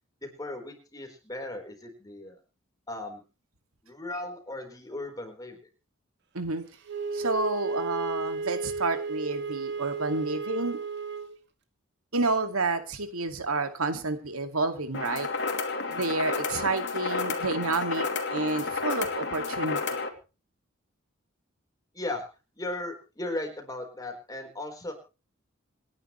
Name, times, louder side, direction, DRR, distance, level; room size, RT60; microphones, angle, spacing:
voice 1, 0.2-2.4 2.9-3.2 3.8-5.6 21.9-22.3 22.6-24.9, left 2 dB, 15° left, 3 dB, 4.3 m, -37 dB
Wind instrument woodwind instrument, 6.9-11.3, right 4 dB, 55° right, 2.0 m, -33 dB
voice 2, 7.1-10.8 12.1-15.3 15.9-18.1 18.3-19.8, right 3 dB, 90° right, 7 dB, 2.3 m, -29 dB
sound 1, 14.9-20.1, left 4 dB, 55° left, 2.7 m, -31 dB
27.5 x 10.5 x 3.2 m, 0.33 s
head